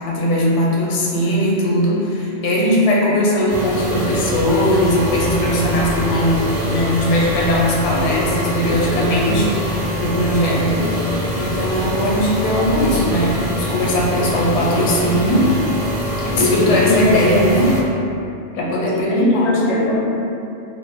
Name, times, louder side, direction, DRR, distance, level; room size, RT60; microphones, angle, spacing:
voice 1, 0.1-10.9 11.4-15.5 16.2-17.8 18.5-19.5, equal, 85° left, -4 dB, 0.9 m, -19 dB
sound 1, 3.5-17.8, equal, 50° right, 0.7 m, -24 dB
voice 2, 16.4-17.4 18.9-20.0, left 2 dB, 50° left, -5 dB, 0.5 m, -19 dB
2.2 x 2.0 x 3.5 m, 2.8 s
omnidirectional pair, 1.2 m